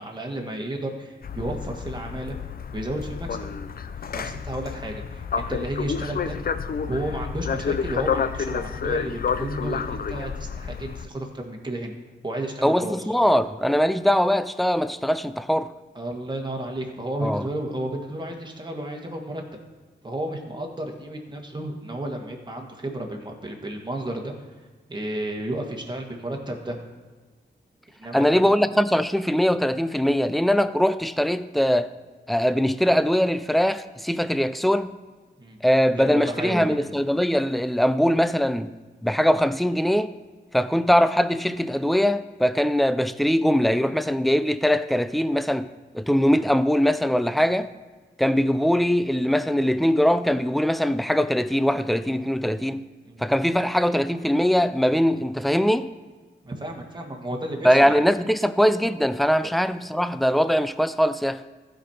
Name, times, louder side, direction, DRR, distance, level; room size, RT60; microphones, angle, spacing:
voice 1, 0.0-2.4 2.7-3.5 4.2-6.4 6.8-12.0 12.2-13.1 16.0-19.4 20.0-24.3 24.9-26.8 28.0-28.5 35.4-35.6 36.0-36.8 53.1-53.2 56.4-58.1 59.4-59.5, right 1 dB, 25° right, 1.6 m, -32 dB
sound 1, 1.2-11.1, left 6 dB, 55° left, 0.5 m, -30 dB
voice 2, 12.6-15.7 17.2-17.4 28.1-31.9 32.3-34.9 35.6-38.7 39.0-40.1 40.5-45.7 45.9-47.7 48.2-52.9 53.2-55.9 57.6-61.4, equal, ahead, 0.4 m, -21 dB
15.5 x 5.2 x 4.4 m
wide cardioid pair, 90°, 18 cm